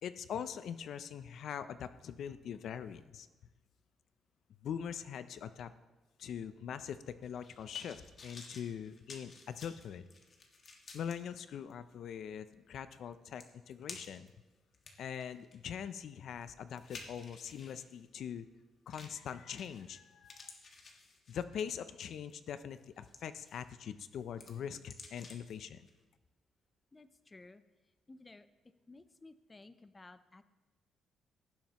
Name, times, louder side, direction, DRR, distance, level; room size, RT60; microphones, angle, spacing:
voice 1, 0.0-3.3 4.6-5.7 6.2-10.1 10.9-14.3 15.0-18.5 18.9-20.5 21.3-25.9, left 8 dB, 70° left, 13 dB, 0.4 m, -42 dB
sound 1, 7.2-11.1 11.7-11.8 13.0-13.1 13.4-14.3 14.7-17.8 18.9-19.2 19.6-20.0 20.2-21.6 22.1-22.3 22.8-23.7 24.0-25.5 25.9-26.0, left 3 dB, 45° left, 1.7 m, -53 dB
voice 2, 26.9-27.6 28.1-28.5 28.9-30.4, left 2 dB, 20° left, 12 dB, 0.6 m, -55 dB
17.0 x 7.3 x 3.0 m, 1.1 s
cardioid pair, 90°, 0 cm